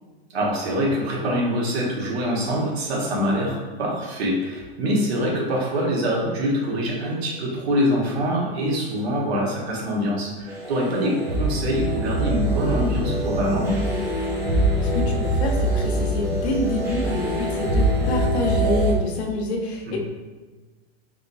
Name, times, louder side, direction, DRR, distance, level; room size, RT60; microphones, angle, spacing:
voice 1, 0.3-13.8 19.9-20.0, equal, 80° right, -3 dB, 1.3 m, -24 dB
sound 1, 10.5-18.9, right 1 dB, 10° right, 0.6 m, -24 dB
voice 2, 14.8-20.0, left 2 dB, 85° left, 1 dB, 0.8 m, -27 dB
3.7 x 3.0 x 2.6 m, 1.3 s
supercardioid pair, 160°, 31 cm